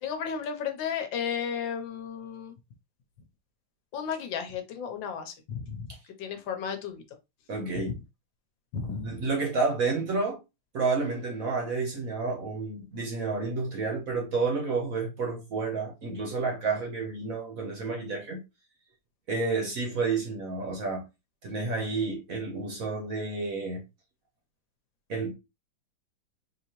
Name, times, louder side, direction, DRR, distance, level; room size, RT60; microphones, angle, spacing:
voice 1, 0.0-2.5 3.9-5.9 6.2-7.0 7.7-7.9 8.7-9.2, left 7 dB, 75° left, 1.4 m, -34 dB
voice 2, 7.5-8.0 8.9-10.4 10.7-18.4 19.3-21.0 21.4-23.8 25.1-25.3, right 4 dB, 55° right, 1.1 m, -30 dB
4.1 x 2.8 x 2.9 m
omnidirectional pair, 2.2 m